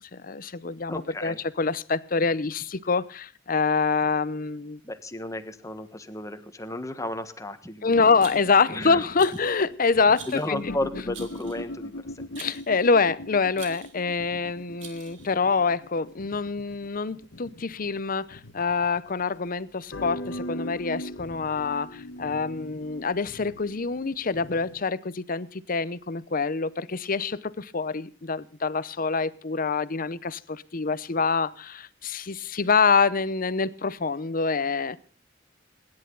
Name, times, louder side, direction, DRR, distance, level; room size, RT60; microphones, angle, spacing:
voice 1, 0.0-4.8 7.8-10.7 12.4-35.0, left 4 dB, 45° left, 0.8 m, -26 dB
voice 2, 0.9-1.4 4.8-8.2 8.7-9.1 10.3-12.2, left 1 dB, 15° left, 1.4 m, -33 dB
sound 1, 8.1-19.2 19.9-24.8, left 1 dB, 65° left, 1.2 m, -41 dB
Rattle, 8.2-8.7 9.2-9.6 10.1-10.5 11.1-11.7 12.4-12.7 13.5-14.0 14.8-15.3, right 7 dB, 75° right, 3.5 m, -45 dB
27.5 x 10.5 x 4.0 m
head